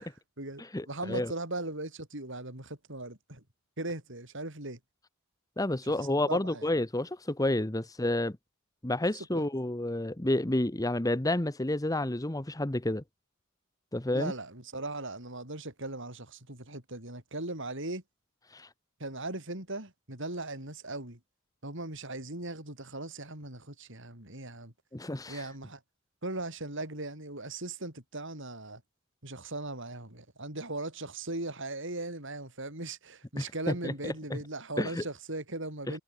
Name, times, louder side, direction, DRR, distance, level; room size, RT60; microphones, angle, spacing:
voice 1, 0.0-3.4 3.8-4.8 6.1-6.7 9.1-9.4 14.1-18.0 19.0-21.2 21.6-24.7 25.3-25.8 26.2-28.8 29.2-36.0, right 2 dB, 60° right, 7.3 m, -38 dB
voice 2, 0.6-1.3 5.6-8.4 8.8-13.0 13.9-14.3 18.5-18.7 24.9-25.5 33.4-34.4 34.8-35.0 35.9-36.0, left 1 dB, 15° left, 1.0 m, -30 dB
head